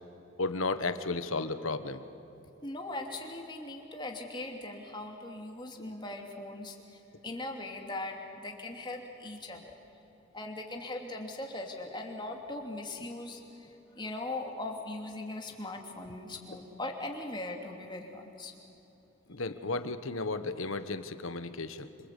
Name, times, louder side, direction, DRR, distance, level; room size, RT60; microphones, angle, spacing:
voice 1, 0.4-2.0 5.8-5.9 13.0-13.1 19.3-21.9, left 3 dB, 75° left, 10 dB, 1.3 m, -34 dB
voice 2, 2.6-7.0 7.2-9.7 10.3-13.7 14.0-18.5, left 2 dB, 20° left, 1 dB, 2.8 m, -40 dB
27.5 x 25.5 x 8.3 m, 3.0 s
head